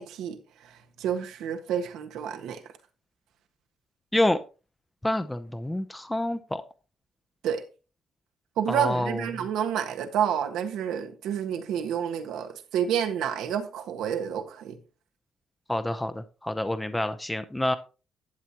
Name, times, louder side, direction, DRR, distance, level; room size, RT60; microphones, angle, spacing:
voice 1, 0.0-2.6 7.4-7.6 8.6-14.8, right 8 dB, 85° right, 1.5 m, -29 dB
voice 2, 4.1-4.4 5.0-6.6 8.7-9.2 15.7-17.8, left 1 dB, 10° left, 0.7 m, -27 dB
12.0 x 8.1 x 2.9 m
cardioid pair, 90°, 0 cm